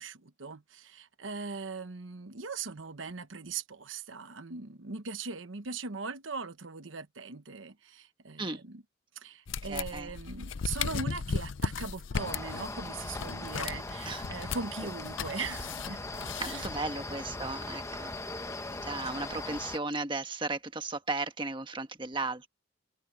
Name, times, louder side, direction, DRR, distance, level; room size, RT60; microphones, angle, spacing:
voice 1, 0.0-8.8 9.2-16.0 16.5-16.7, right 4 dB, 85° right, 1.1 m, -40 dB
sound 1, 9.5-17.1, left 6 dB, 85° left, 0.6 m, -37 dB
voice 2, 9.7-10.1 14.0-14.2 16.4-18.1 18.4-18.5 18.8-22.5, right 3 dB, 25° right, 1.4 m, -35 dB
sound 2, 12.2-19.8, left 2 dB, 15° left, 1.2 m, -39 dB
head